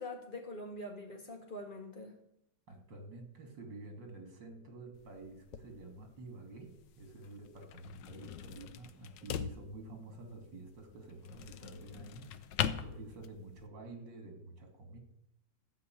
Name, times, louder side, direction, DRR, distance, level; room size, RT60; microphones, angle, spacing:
voice 1, 0.0-2.1, left 1 dB, 25° left, 3 dB, 2.2 m, -44 dB
voice 2, 2.7-15.0, right 2 dB, 75° right, 5 dB, 3.1 m, -49 dB
sound 1, 4.9-13.7, left 9 dB, 75° left, 1.4 m, -42 dB
14.5 x 5.6 x 9.2 m, 0.77 s
omnidirectional pair, 2.0 m